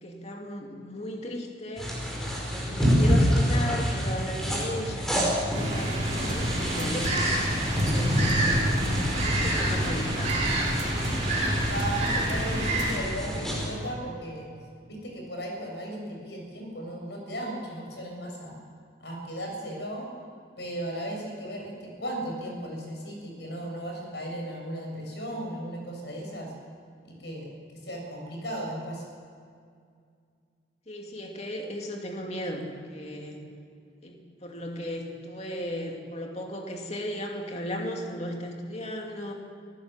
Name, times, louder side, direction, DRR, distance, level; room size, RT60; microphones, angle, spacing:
voice 1, 0.0-2.0 2.6-7.3 7.6-8.8 9.2-10.5 30.9-33.4 34.0-39.3, equal, 35° left, 1 dB, 2.6 m, -36 dB
sound 1, 1.8-13.7, equal, ahead, 5.0 m, -28 dB
sound 2, 5.5-13.0, right 1 dB, 40° right, 5.5 m, -28 dB
sound 3, 6.3-6.5 6.8-7.3 7.8-8.0 8.3-8.5 10.3-10.5 10.8-11.3 11.8-12.0 12.3-12.5 12.8-12.9, right 1 dB, 75° right, 2.7 m, -37 dB
voice 2, 11.7-14.5 14.9-18.6 19.0-20.1 20.6-26.5 27.0-29.0, right 1 dB, 65° left, 1 dB, 6.6 m, -36 dB
25.5 x 15.0 x 7.6 m, 2.2 s
head